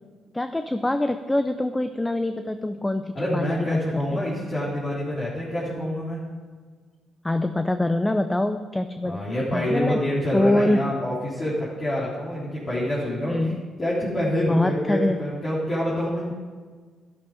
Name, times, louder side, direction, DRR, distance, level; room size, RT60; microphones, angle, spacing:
voice 1, 0.3-4.2 7.2-10.0 10.3-10.8 13.3-13.6 14.5-15.2, left 1 dB, 10° left, 9 dB, 0.6 m, -24 dB
voice 2, 3.1-6.2 9.0-13.5 13.8-16.3, left 1 dB, 30° left, -8 dB, 3.8 m, -27 dB
12.0 x 12.0 x 5.2 m, 1.5 s
cardioid pair, 90°, 0 cm